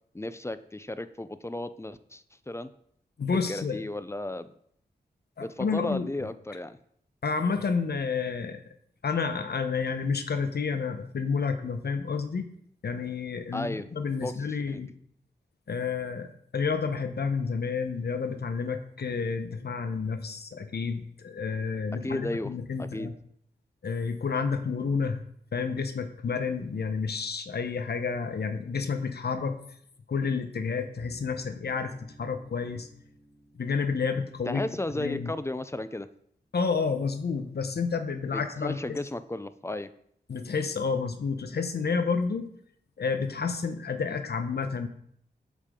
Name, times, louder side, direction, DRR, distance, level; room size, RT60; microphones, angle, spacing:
voice 1, 0.1-2.7 3.5-4.5 5.4-6.8 13.5-13.9 14.2-14.3 14.7-14.8 22.0-22.5 22.8-23.1 34.5-36.1 38.3-39.9, left 1 dB, 15° left, 13 dB, 0.6 m, -34 dB
voice 2, 3.2-3.8 5.4-6.3 7.2-8.6 9.0-12.5 12.8-15.0 15.7-16.3 16.5-23.1 23.8-25.2 25.5-29.6 30.1-32.9 33.5-34.6 35.0-35.3 36.5-39.0 40.3-42.5 43.0-44.9, left 5 dB, 65° left, 8 dB, 0.9 m, -30 dB
sound 1, 31.0-36.1, right 1 dB, 35° right, 2.6 m, -56 dB
8.2 x 7.3 x 3.8 m, 0.67 s
cardioid pair, 45°, 18 cm